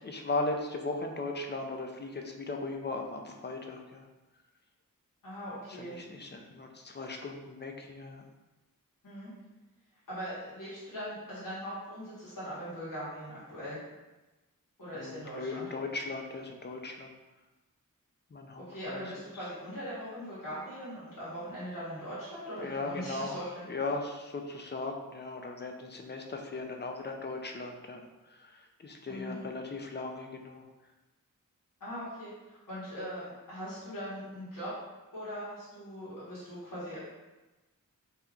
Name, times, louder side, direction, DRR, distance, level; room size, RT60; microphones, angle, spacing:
voice 1, 0.0-4.1 5.8-8.2 14.9-17.1 18.3-19.0 22.6-23.4 23.7-30.7, left 3 dB, 35° left, 3 dB, 0.4 m, -37 dB
voice 2, 5.2-6.0 9.0-9.3 10.1-13.8 14.8-15.7 18.7-23.7 29.1-29.4 31.8-34.7 35.1-37.0, equal, 75° left, -11 dB, 1.3 m, -40 dB
3.5 x 2.8 x 2.3 m, 1.1 s
wide cardioid pair, 75°, 33 cm